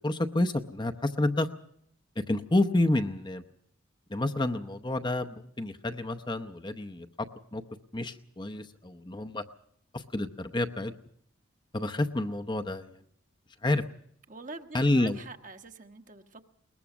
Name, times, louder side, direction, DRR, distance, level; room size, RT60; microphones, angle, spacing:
voice 1, 0.0-1.5 2.2-3.4 4.1-7.3 7.5-7.6 7.9-9.4 9.9-10.9 11.7-13.0 13.6-13.8 14.7-15.2, left 1 dB, 20° left, 6 dB, 0.7 m, -29 dB
voice 2, 14.3-16.4, right 3 dB, 40° right, 6 dB, 1.2 m, -45 dB
21.5 x 20.5 x 6.1 m, 0.68 s
head